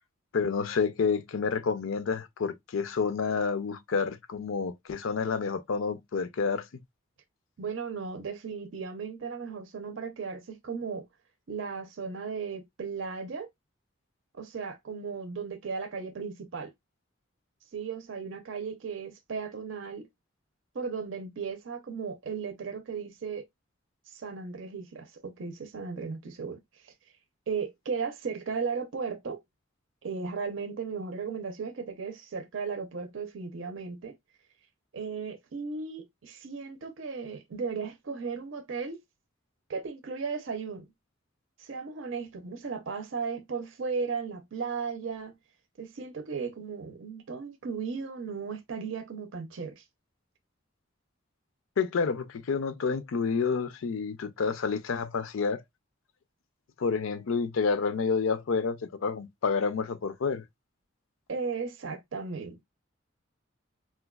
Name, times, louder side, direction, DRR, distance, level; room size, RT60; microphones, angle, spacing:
voice 1, 0.3-6.7 51.8-55.6 56.8-60.4, left 5 dB, 90° left, 0.5 m, -29 dB
voice 2, 7.6-11.1 11.5-13.5 14.3-16.7 17.7-20.1 20.7-23.5 24.1-26.9 27.5-29.4 30.0-34.1 34.9-39.0 39.7-40.9 41.6-45.3 45.8-49.8 61.3-62.6, right 5 dB, 70° right, 0.6 m, -36 dB
4.3 x 2.2 x 2.2 m
head